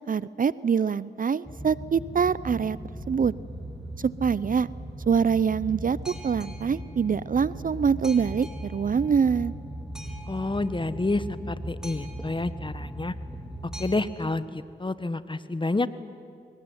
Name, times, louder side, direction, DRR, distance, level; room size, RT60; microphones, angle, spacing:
voice 1, 0.1-2.8 3.1-3.3 4.0-4.7 5.1-9.5, right 6 dB, 45° right, 19 dB, 0.6 m, -24 dB
Boat Water vehicle, 1.4-13.9, right 1 dB, 5° right, 4.8 m, -38 dB
voice 2, 10.3-13.1 13.8-15.9, left 2 dB, 25° left, 14 dB, 1.4 m, -29 dB
23.0 x 19.0 x 9.7 m, 2.3 s
supercardioid pair, 40°, 19 cm